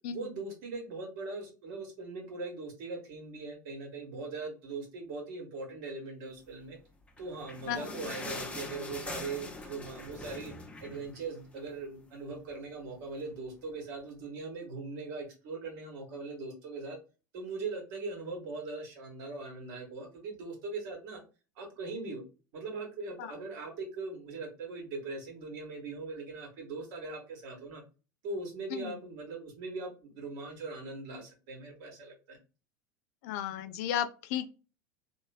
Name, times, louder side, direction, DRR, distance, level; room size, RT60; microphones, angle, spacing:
voice 1, 0.1-6.8 7.2-10.5 10.8-17.0 17.3-21.2 21.5-22.2 22.5-27.8 28.2-32.4, right 3 dB, 55° right, 1 dB, 1.4 m, -40 dB
sound 1, 7.0-11.8 12.1-12.2 12.5-12.7 13.4-13.5, left 2 dB, 10° left, 0.6 m, -43 dB
voice 2, 33.2-34.5, left 10 dB, 55° left, 12 dB, 0.4 m, -34 dB
3.0 x 2.5 x 2.3 m, 0.32 s
figure-of-eight pair, 75°, 10 cm